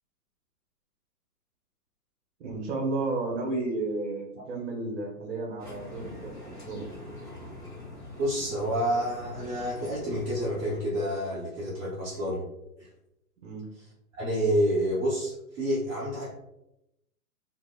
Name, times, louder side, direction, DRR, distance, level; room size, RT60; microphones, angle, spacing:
voice 1, 2.4-6.9 13.4-13.7, right 3 dB, 45° right, -1 dB, 1.0 m, -32 dB
sound 1, 5.6-10.8, left 1 dB, 10° left, 0.8 m, -44 dB
voice 2, 8.2-12.5 12.8-12.9 14.1-16.4, equal, 20° right, -8 dB, 0.8 m, -29 dB
2.8 x 2.0 x 3.5 m, 0.85 s
hypercardioid pair, 135°, 48 cm